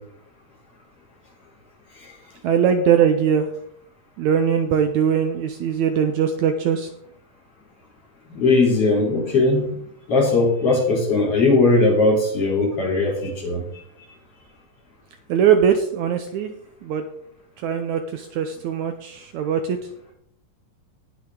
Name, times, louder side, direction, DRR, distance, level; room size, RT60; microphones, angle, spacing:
voice 1, 2.4-3.5 4.2-6.9 15.3-16.5 16.8-17.0 17.6-19.8, right 8 dB, 75° right, 7 dB, 1.9 m, -21 dB
voice 2, 8.3-9.8 10.1-13.6, left 3 dB, 45° left, -2 dB, 4.6 m, -19 dB
18.5 x 6.6 x 3.8 m, 0.68 s
omnidirectional pair, 3.8 m